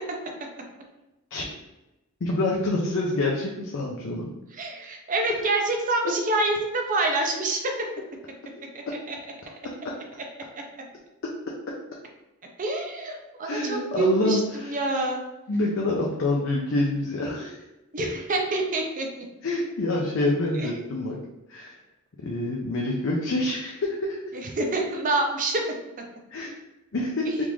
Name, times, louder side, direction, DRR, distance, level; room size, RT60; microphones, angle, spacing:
voice 1, 2.2-4.3 8.6-8.7 13.5-14.8 15.5-17.5 19.4-21.2 21.5-21.7 22.2-24.2 26.3-26.5 26.9-27.3, left 2 dB, 65° left, -2 dB, 0.5 m, -26 dB
voice 2, 4.6-7.7 8.7-9.2 12.6-15.2 17.9-19.1 20.6-20.8 24.3-25.6 27.3-27.4, right 2 dB, 40° right, 2 dB, 0.5 m, -26 dB
3.6 x 2.5 x 3.0 m, 1.0 s
head